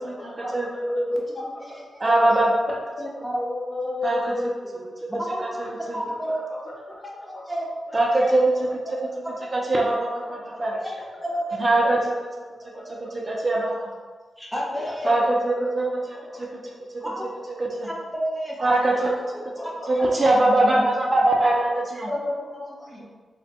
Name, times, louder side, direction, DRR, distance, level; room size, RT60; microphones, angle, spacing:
voice 1, 0.2-0.7 2.0-2.8 4.0-4.2 5.9-6.0 7.9-8.4 9.5-10.7 11.6-12.0 13.3-13.9 15.0-16.5 17.6-17.9 18.6-19.1 19.9-22.1, right 1 dB, 30° right, -2 dB, 0.5 m, -21 dB
voice 2, 0.7-2.2 3.0-4.4 4.7-5.4 5.9-6.4 7.5-7.7 8.2-8.3 11.2-11.9 14.4-15.2 16.5-16.6 17.0-17.2 17.8-19.0 22.0-23.0, equal, 5° left, -4 dB, 0.8 m, -30 dB
voice 3, 10.5-11.0 12.7-12.8 14.8-14.9 15.2-15.3 15.5-15.7 19.0-20.3, left 1 dB, 35° left, -4 dB, 0.9 m, -39 dB
3.4 x 2.1 x 4.1 m, 1.4 s
wide cardioid pair, 110°, 0 cm